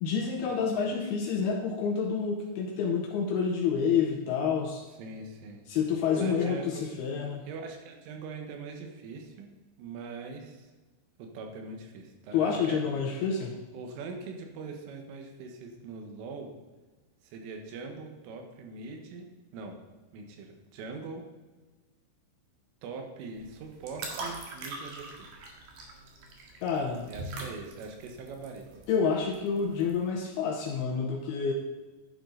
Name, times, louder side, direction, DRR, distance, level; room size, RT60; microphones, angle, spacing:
voice 1, 0.0-4.8 5.7-7.4 12.3-13.6 26.6-27.1 28.9-31.5, left 6 dB, 90° left, 1 dB, 2.2 m, -28 dB
voice 2, 5.0-5.6 6.2-6.8 7.5-9.5 9.8-10.7 11.2-12.8 13.7-16.5 17.2-19.8 20.1-21.2 22.8-25.3 27.1-28.7, right 4 dB, 75° right, 3 dB, 3.9 m, -42 dB
sound 1, 23.3-30.1, right 2 dB, 60° right, 2.5 m, -42 dB
11.0 x 10.0 x 4.0 m, 1.2 s
omnidirectional pair, 5.9 m